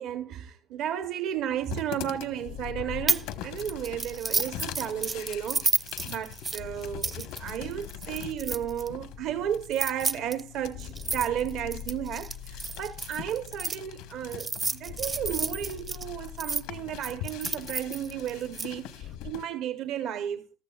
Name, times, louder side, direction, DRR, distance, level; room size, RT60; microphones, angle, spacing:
voice 1, 0.0-20.6, right 10 dB, 60° right, 0.8 m, -33 dB
sound 1, 1.6-19.4, left 11 dB, 90° left, 1.1 m, -43 dB
sound 2, 2.4-6.0 6.6-10.4 10.7-14.4 14.9-19.3, left 11 dB, 60° left, 0.5 m, -44 dB
sound 3, 3.1-3.3 3.6-8.9 9.6-13.8 14.3-16.6 17.0-18.7, right 4 dB, 20° right, 0.5 m, -31 dB
14.5 x 13.5 x 2.3 m
cardioid pair, 165°, 0 cm